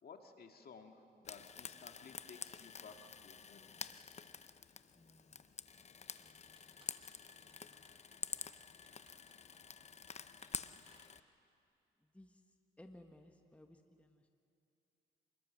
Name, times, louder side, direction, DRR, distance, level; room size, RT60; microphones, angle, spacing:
voice 1, 0.0-4.1, left 5 dB, 50° left, 4 dB, 2.1 m, -57 dB
Frying (food), 1.2-11.2, left 6 dB, 35° left, 0.7 m, -49 dB
voice 2, 4.9-5.6 6.2-6.9 7.3-7.9 12.0-12.4 12.8-14.3, left 1 dB, 5° left, 5 dB, 1.4 m, -62 dB
sound 1, 5.7-11.6, right 2 dB, 25° right, 4.2 m, -70 dB
27.0 x 21.0 x 6.5 m, 2.6 s
cardioid pair, 90°, 20 cm